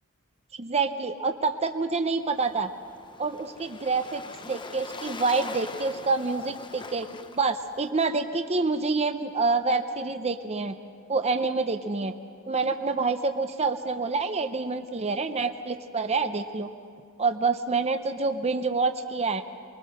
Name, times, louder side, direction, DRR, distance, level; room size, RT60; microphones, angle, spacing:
voice 1, 0.5-2.7 3.2-7.1 7.3-10.7 11.1-12.1 12.5-16.7 17.2-19.4, right 4 dB, 30° right, 7 dB, 0.7 m, -27 dB
Waves surf, 2.2-7.9, left 3 dB, 20° left, 0.7 m, -43 dB
24.0 x 21.5 x 6.4 m, 2.2 s
head